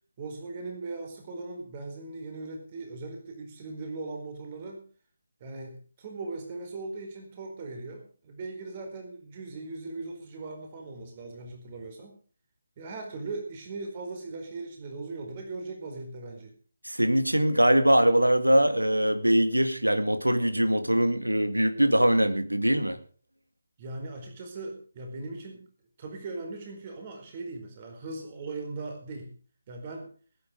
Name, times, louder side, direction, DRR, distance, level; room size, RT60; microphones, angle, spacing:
voice 1, 0.2-4.8 5.4-12.2 12.8-16.5 23.8-25.6 26.0-29.3 29.7-30.1, right 3 dB, 30° right, 3 dB, 4.6 m, -39 dB
voice 2, 16.8-23.0, right 1 dB, 90° right, 10 dB, 2.3 m, -22 dB
20.5 x 10.0 x 5.2 m, 0.42 s
figure-of-eight pair, 150°, 0 cm